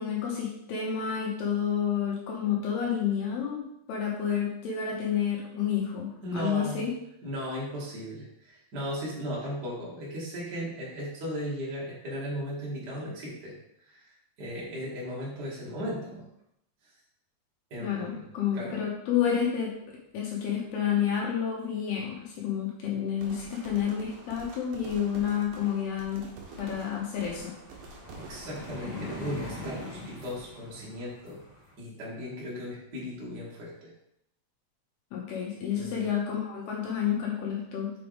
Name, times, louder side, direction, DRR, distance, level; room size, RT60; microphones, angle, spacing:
voice 1, 0.0-6.9 17.8-19.8 20.1-26.3 26.6-27.5 35.1-37.9, left 8 dB, 70° left, -2 dB, 2.6 m, -30 dB
voice 2, 6.2-6.9 7.2-16.2 17.7-18.2 18.5-18.8 28.2-31.4 31.8-33.9 35.7-36.0, equal, 35° right, -6 dB, 1.6 m, -37 dB
sound 1, 23.2-28.7, right 2 dB, 65° right, 2.6 m, -47 dB
sound 2, 25.6-25.7 26.0-31.7, left 2 dB, 40° left, 2.2 m, -42 dB
6.4 x 6.3 x 3.5 m, 0.78 s
omnidirectional pair, 5.5 m